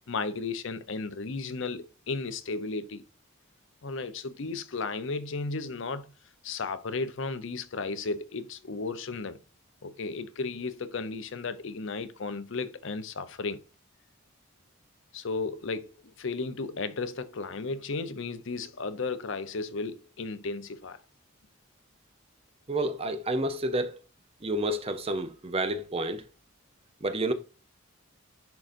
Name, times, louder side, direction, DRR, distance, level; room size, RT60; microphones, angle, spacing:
voice 1, 0.1-3.0 3.8-6.1 6.4-9.4 9.8-13.6 15.1-21.0, left 3 dB, 60° left, 0.6 m, -34 dB
voice 2, 22.7-24.0 24.4-26.2 27.0-27.3, right 1 dB, 30° right, 0.7 m, -29 dB
10.5 x 3.8 x 2.5 m
head